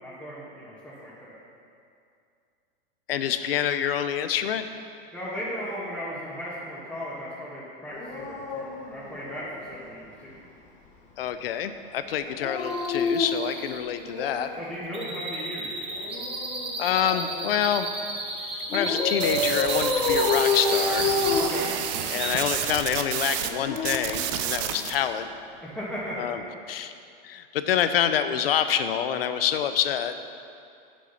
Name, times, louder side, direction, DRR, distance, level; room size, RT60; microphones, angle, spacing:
voice 1, 0.0-1.4 5.1-10.4 14.6-15.7 21.4-21.7 25.6-26.3, equal, 5° left, -10 dB, 1.8 m, -36 dB
voice 2, 3.1-4.7 11.2-14.5 16.8-17.9 18.4-21.1 22.1-25.3 26.2-26.4 26.7-26.9 27.2-30.2, left 9 dB, 80° left, 10 dB, 0.7 m, -27 dB
Dog, 7.9-9.8 12.2-14.6 15.9-17.6 18.7-22.3 23.2-24.9 26.1-26.4, left 3 dB, 25° left, 1.3 m, -29 dB
sound 1, 12.6-22.3, right 2 dB, 20° right, 1.5 m, -34 dB
sound 2, 19.2-23.5 23.8-24.9, right 10 dB, 50° right, 0.6 m, -30 dB
7.2 x 6.9 x 5.7 m, 2.4 s
hypercardioid pair, 125°, 29 cm